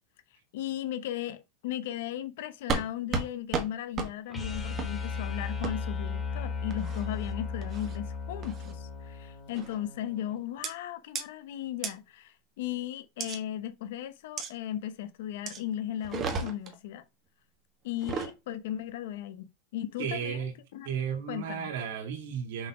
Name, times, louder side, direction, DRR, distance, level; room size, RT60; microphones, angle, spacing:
voice 1, 0.5-17.0 17.8-19.5 19.7-20.4 20.7-20.9 21.3-21.7, left 11 dB, 70° left, 1.0 m, -36 dB
sound 1, 2.7-2.9 3.1-3.3 3.5-3.7 4.0-4.1 4.8-4.9 5.6-5.7 6.7-7.0 7.6-8.0 8.4-8.7 9.5-9.8 10.6-10.7 11.1-11.2 11.8-11.9 13.2-13.4 14.4-14.5 15.5-15.6 16.0-16.7 17.9-18.3, right 5 dB, 25° right, 1.3 m, -33 dB
sound 2, 4.3-10.4, left 5 dB, 10° left, 2.0 m, -36 dB
voice 2, 20.0-20.5 20.8-22.7, right 7 dB, 70° right, 2.5 m, -34 dB
6.4 x 4.2 x 5.0 m
supercardioid pair, 175°, 0 cm